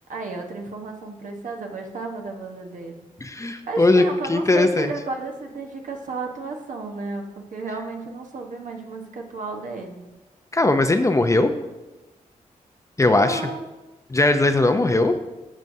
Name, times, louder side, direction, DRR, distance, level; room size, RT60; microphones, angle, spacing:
voice 1, 0.1-3.1 3.7-10.0 13.2-13.6, right 3 dB, 65° right, 1 dB, 1.2 m, -33 dB
voice 2, 3.2-4.0 4.3-4.9 10.5-11.5 13.0-13.4 14.1-15.1, left 2 dB, 20° left, 7 dB, 0.6 m, -19 dB
12.0 x 6.1 x 2.7 m, 1.1 s
cardioid pair, 70°, 14 cm